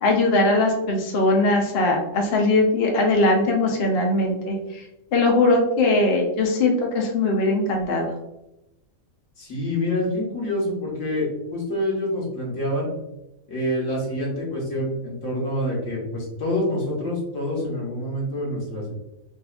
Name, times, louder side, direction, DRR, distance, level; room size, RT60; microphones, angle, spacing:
voice 1, 0.0-4.8 5.1-8.1, left 2 dB, 55° left, 1 dB, 0.7 m, -20 dB
voice 2, 9.4-12.9 13.5-18.9, left 1 dB, 80° left, -4 dB, 1.6 m, -27 dB
4.0 x 2.4 x 2.3 m, 0.89 s
omnidirectional pair, 1.4 m